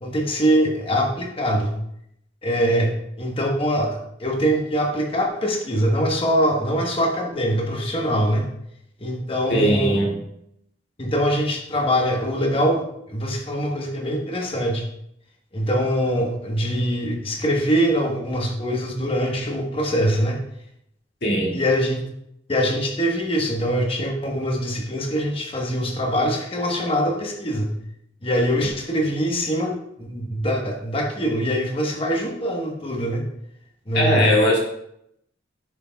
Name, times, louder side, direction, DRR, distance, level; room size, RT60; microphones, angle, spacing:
voice 1, 0.0-1.7 2.4-8.4 9.0-10.0 11.0-14.8 15.5-20.4 21.5-22.0 22.5-27.7 28.2-33.2 33.9-34.3, equal, 30° left, 1 dB, 1.2 m, -23 dB
voice 2, 9.5-10.1 21.2-21.6 33.9-34.6, left 1 dB, 60° left, -2 dB, 2.1 m, -19 dB
10.5 x 6.1 x 2.3 m, 0.75 s
head